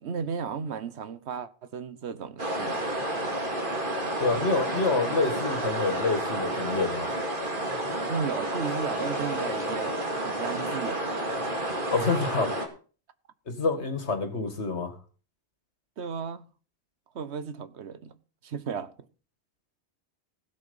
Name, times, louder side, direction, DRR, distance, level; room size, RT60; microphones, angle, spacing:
voice 1, 0.0-3.0 4.3-4.8 7.9-11.2 16.0-16.4 17.1-18.2 18.4-18.9, right 6 dB, 80° right, 1.2 m, -35 dB
sound 1, 2.4-12.7, right 1 dB, 50° right, 2.6 m, -30 dB
voice 2, 4.2-7.2 11.9-12.6 13.5-14.9, left 3 dB, 90° left, 2.2 m, -27 dB
16.0 x 7.9 x 5.4 m
omnidirectional pair, 1.1 m